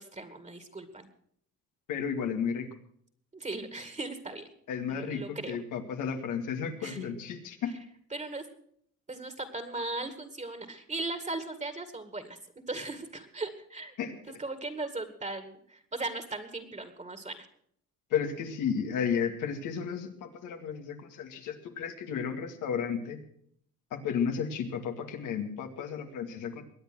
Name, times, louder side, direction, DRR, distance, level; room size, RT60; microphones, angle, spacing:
voice 1, 0.1-1.1 3.3-4.5 4.9-5.6 6.8-7.1 7.6-7.8 8.1-8.5 9.1-12.4 12.7-13.9 14.3-17.5, right 2 dB, 25° right, 10 dB, 2.1 m, -38 dB
voice 2, 1.9-2.7 4.7-7.7 14.0-14.1 18.1-23.2 23.9-26.6, left 7 dB, 90° left, 5 dB, 2.2 m, -33 dB
22.0 x 9.0 x 6.2 m, 0.64 s
cardioid pair, 90°, 30 cm